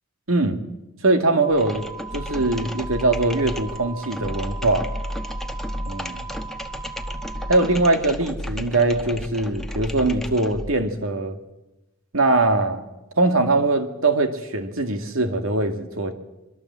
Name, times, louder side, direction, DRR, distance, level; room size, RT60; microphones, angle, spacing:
voice 1, 0.3-0.6 1.0-1.8 2.1-4.9 5.9-6.2 7.5-11.4 12.1-12.8 13.2-16.1, right 2 dB, 70° right, 2.3 m, -21 dB
sound 1, 1.4-7.6, right 5 dB, 20° right, 6.4 m, -39 dB
sound 2, 1.5-10.8, equal, ahead, 1.1 m, -33 dB
23.5 x 22.0 x 7.6 m
head